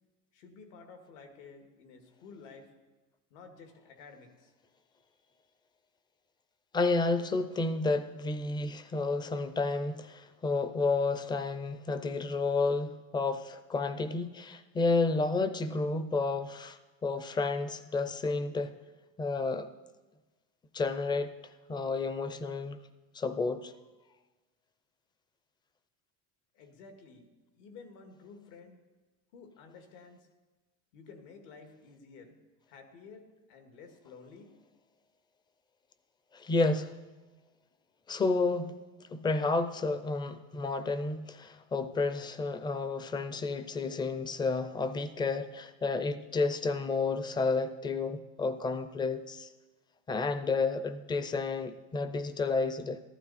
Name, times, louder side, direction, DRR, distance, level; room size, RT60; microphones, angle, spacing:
voice 1, 0.3-2.7 3.3-4.5 5.0-5.4 26.5-27.3 27.5-28.8 29.3-30.3 30.9-32.4 32.7-34.5, left 4 dB, 85° left, 2.0 m, -52 dB
voice 2, 6.7-18.7 19.2-19.7 20.7-21.3 21.7-22.8 23.1-23.7 36.3-36.9 38.1-38.7 39.1-49.5 50.1-53.0, left 3 dB, 10° left, 0.4 m, -31 dB
14.5 x 12.0 x 4.1 m
cardioid pair, 150°, 36 cm